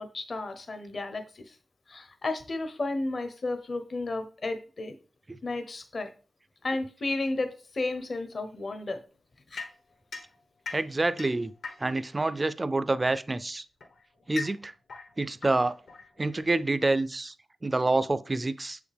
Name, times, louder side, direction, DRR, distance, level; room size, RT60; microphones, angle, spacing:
voice 1, 0.0-1.5 1.9-5.0 5.4-6.1 6.6-9.0 9.5-9.6, left 2 dB, 50° left, 0.8 m, -33 dB
sound 1, 9.6-12.2 13.2-16.6, left 4 dB, 75° left, 1.1 m, -42 dB
voice 2, 10.7-11.5 11.8-13.7 14.3-14.7 15.2-15.8 16.2-17.3 17.6-18.8, right 2 dB, 30° right, 0.4 m, -27 dB
6.5 x 5.0 x 3.4 m
cardioid pair, 80°, 0 cm